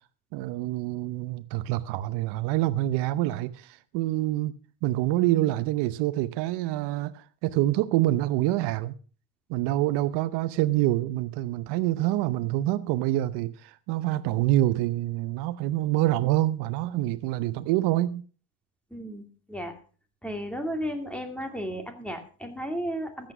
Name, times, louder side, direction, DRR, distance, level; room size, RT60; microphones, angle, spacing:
voice 1, 0.3-4.5 4.8-8.9 9.5-18.2, right 15 dB, 85° right, 0.9 m, -26 dB
voice 2, 18.9-19.7 20.2-23.3, equal, 5° left, 2.5 m, -34 dB
14.0 x 8.7 x 6.0 m
cardioid pair, 135°, 40 cm